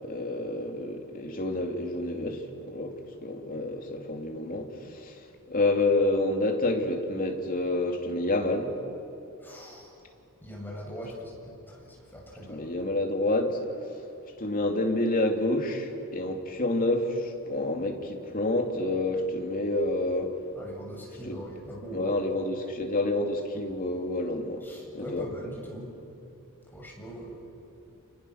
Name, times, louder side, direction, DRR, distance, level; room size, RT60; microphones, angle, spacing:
voice 1, 0.0-8.7 12.5-13.6 14.4-20.3 21.2-21.4 21.9-24.6 24.9-25.3, left 2 dB, 40° left, 2 dB, 2.9 m, -28 dB
voice 2, 9.4-9.9 10.4-12.7 20.5-22.1 24.6-25.9 26.7-27.4, equal, 10° left, -2 dB, 7.2 m, -41 dB
29.5 x 28.5 x 6.6 m, 2.8 s
head